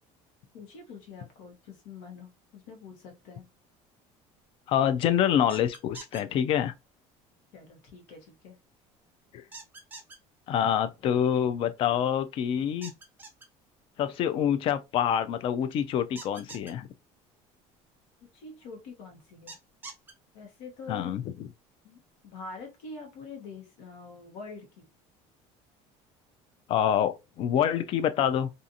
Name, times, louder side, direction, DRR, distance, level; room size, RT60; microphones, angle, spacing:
voice 1, 0.5-3.4 7.5-8.5 18.3-19.6 20.3-21.1 21.8-24.9, left 4 dB, 90° left, 1.0 m, -45 dB
voice 2, 4.7-6.7 10.5-12.9 14.0-16.9 20.9-21.2 26.7-28.5, left 9 dB, 40° left, 0.3 m, -26 dB
sound 1, 5.5-6.2 9.5-10.2 12.8-13.5 16.2-16.7 19.5-20.1, right 3 dB, 15° right, 0.5 m, -44 dB
2.6 x 2.4 x 2.5 m
cardioid pair, 165°, 14 cm